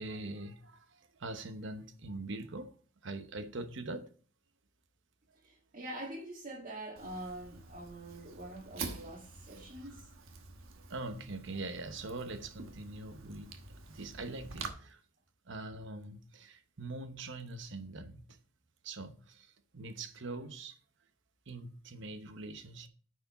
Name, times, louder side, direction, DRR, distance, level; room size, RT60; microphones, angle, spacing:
voice 1, 0.0-2.7 3.0-4.1 10.8-13.5 13.9-15.0 15.5-18.4 18.8-20.8 21.5-22.9, right 2 dB, 60° right, 0.9 m, -43 dB
voice 2, 5.4-10.1, right 1 dB, 40° right, 1.6 m, -45 dB
Fire, 7.0-14.7, right 4 dB, 80° right, 1.1 m, -47 dB
9.4 x 4.8 x 4.1 m
head